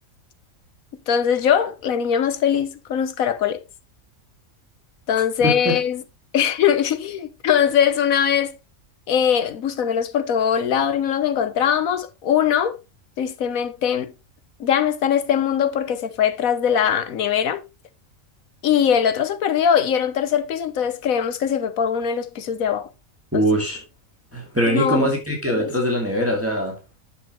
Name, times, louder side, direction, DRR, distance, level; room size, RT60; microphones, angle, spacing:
voice 1, 1.1-3.6 5.1-6.0 6.3-8.5 9.1-12.8 13.2-14.1 14.6-17.6 18.6-22.9 23.3-23.6 24.7-25.1 25.6-25.7, left 8 dB, 80° left, 1.3 m, -21 dB
voice 2, 5.4-5.8 23.3-23.8 24.3-26.8, equal, 10° right, 2.3 m, -22 dB
9.9 x 6.8 x 3.0 m
omnidirectional pair, 1.4 m